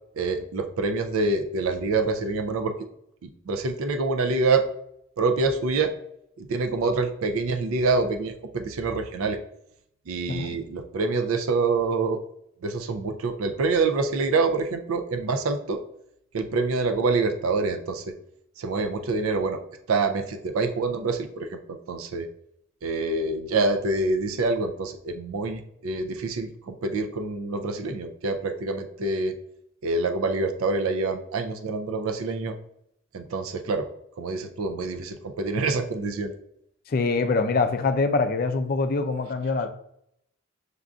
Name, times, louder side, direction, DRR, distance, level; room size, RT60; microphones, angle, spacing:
voice 1, 0.2-2.7 3.2-4.6 5.2-5.9 6.4-9.4 10.1-12.2 12.6-15.8 16.3-18.2 18.6-19.6 19.9-22.3 22.8-29.3 29.8-32.6 33.1-33.9 34.2-36.3, right 3 dB, 85° right, 6 dB, 0.4 m, -26 dB
voice 2, 36.9-39.7, left 3 dB, 45° left, 8 dB, 0.4 m, -24 dB
6.5 x 2.5 x 2.3 m, 0.74 s
head